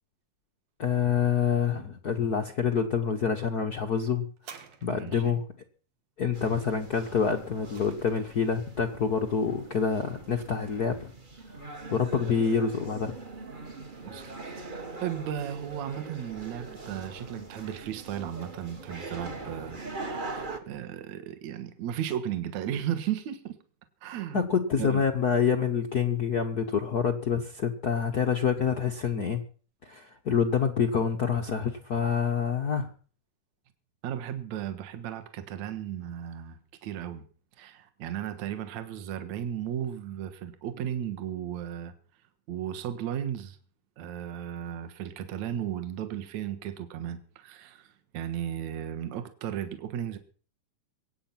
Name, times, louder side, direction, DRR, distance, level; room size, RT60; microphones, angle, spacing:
voice 1, 0.8-4.3 4.8-5.4 6.2-11.1 11.5-13.2 24.3-29.4 29.8-32.9, left 6 dB, 80° left, 4 dB, 0.8 m, -27 dB
sound 1, 4.4-5.4 7.1-8.5 9.3-9.4, right 7 dB, 85° right, 3.5 m, -50 dB
voice 2, 4.9-5.4 14.0-23.6 24.0-24.4 24.8-25.0 34.0-37.2 37.6-41.9 42.5-43.6 44.0-50.2, right 10 dB, 65° right, 9 dB, 2.6 m, -35 dB
sound 2, 6.3-20.6, right 3 dB, 35° right, 0.8 m, -42 dB
23.5 x 9.0 x 5.9 m, 0.41 s
omnidirectional pair, 3.8 m